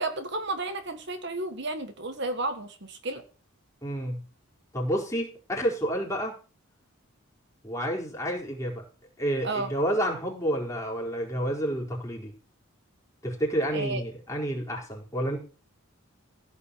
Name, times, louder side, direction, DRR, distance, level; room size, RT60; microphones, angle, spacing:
voice 1, 0.0-3.2 9.4-9.7 13.7-14.0, right 2 dB, 55° right, 8 dB, 1.6 m, -32 dB
voice 2, 3.8-4.2 4.7-6.4 7.6-8.8 9.2-12.3 13.2-15.4, equal, 15° left, -3 dB, 4.6 m, -29 dB
16.0 x 5.5 x 8.6 m, 0.36 s
head